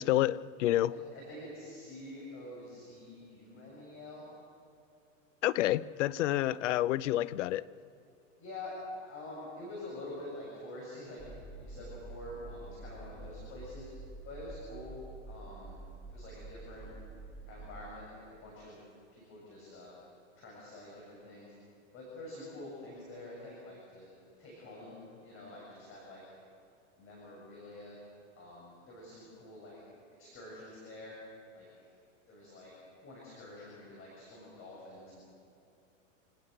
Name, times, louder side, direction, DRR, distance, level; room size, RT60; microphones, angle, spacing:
voice 1, 0.0-0.9 5.4-7.7, left 14 dB, 70° left, 19 dB, 0.7 m, -29 dB
voice 2, 0.9-4.2 8.4-8.8 9.0-11.2 11.6-13.9 14.2-14.9 15.3-15.8 16.1-16.9 17.4-18.8 19.1-20.0 20.4-21.5 21.9-24.1 24.4-25.0 25.2-26.2 27.0-28.0 28.3-29.8 30.2-31.2 31.5-31.9 32.3-32.7 33.0-35.2, left 1 dB, 35° left, -4 dB, 7.0 m, -47 dB
sound 1, 11.2-18.0, right 2 dB, ahead, 2.4 m, -48 dB
27.5 x 18.0 x 6.6 m, 2.7 s
hypercardioid pair, 120°, 38 cm